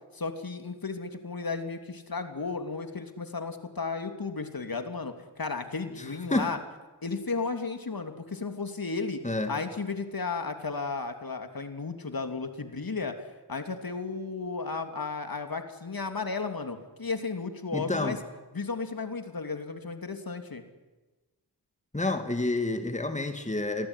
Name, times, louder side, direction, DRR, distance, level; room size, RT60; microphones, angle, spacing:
voice 1, 0.1-6.6 7.0-9.2 9.5-13.1 13.5-18.2 18.5-20.6, left 4 dB, 55° left, 3.1 m, -34 dB
voice 2, 17.7-18.2 21.9-23.9, left 2 dB, 15° left, 2.6 m, -29 dB
26.0 x 19.5 x 10.0 m
cardioid pair, 50°, 42 cm